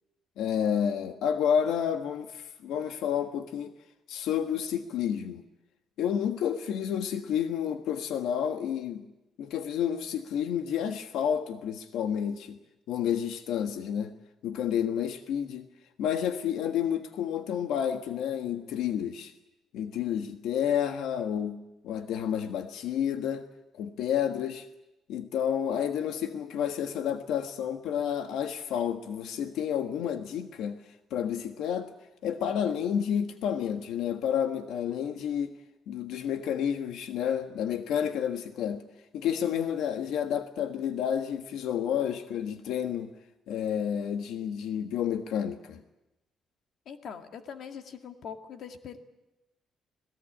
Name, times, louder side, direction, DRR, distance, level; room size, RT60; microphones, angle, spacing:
voice 1, 0.4-3.7 4.1-5.4 6.0-9.0 9.4-12.6 12.9-14.1 14.4-15.6 16.0-19.3 19.7-21.6 21.8-23.4 23.7-24.6 25.1-30.8 31.1-31.9 32.2-35.5 35.9-38.8 39.1-43.1 43.5-45.8, left 9 dB, 90° left, 1.5 m, -30 dB
voice 2, 46.9-49.0, left 7 dB, 50° left, 2.0 m, -42 dB
26.5 x 18.5 x 8.7 m
cardioid pair, 180°, 0 cm